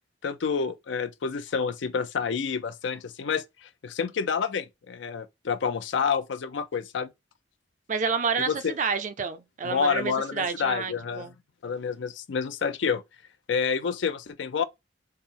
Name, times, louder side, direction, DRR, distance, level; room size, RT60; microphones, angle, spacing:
voice 1, 0.2-7.1 8.4-8.7 9.6-11.3 11.6-13.0 13.5-14.6, left 6 dB, 75° left, 0.5 m, -29 dB
voice 2, 7.9-11.3, right 5 dB, 40° right, 0.4 m, -29 dB
4.2 x 2.0 x 3.7 m
head